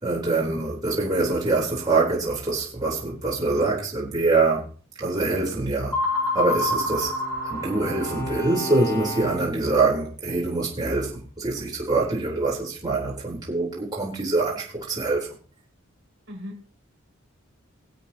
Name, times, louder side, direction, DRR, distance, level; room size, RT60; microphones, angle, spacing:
voice 1, 0.0-4.6 5.0-6.0 6.3-7.1 7.5-15.3, right 3 dB, 20° right, -5 dB, 4.1 m, -24 dB
sound 1, 5.9-8.5, left 2 dB, 20° left, 4.8 m, -27 dB
Bowed string instrument, 6.2-9.8, equal, 50° left, 3.3 m, -35 dB
voice 2, 16.3-16.7, left 1 dB, 65° right, -1 dB, 4.9 m, -39 dB
22.0 x 8.2 x 3.0 m, 0.40 s
head